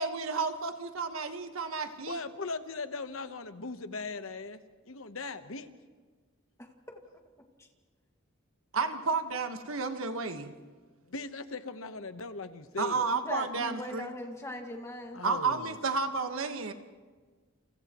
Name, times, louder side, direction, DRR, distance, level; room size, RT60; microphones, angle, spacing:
voice 1, 0.0-2.2 8.7-10.5 12.8-14.1 15.2-16.7, right 4 dB, 80° right, 6 dB, 1.4 m, -31 dB
voice 2, 2.0-4.6 4.9-5.7 11.0-13.1 15.1-15.8, left 3 dB, 75° left, 9 dB, 1.1 m, -39 dB
voice 3, 13.1-15.2, left 1 dB, 15° left, 2 dB, 1.9 m, -40 dB
29.5 x 28.5 x 3.1 m, 1.4 s
head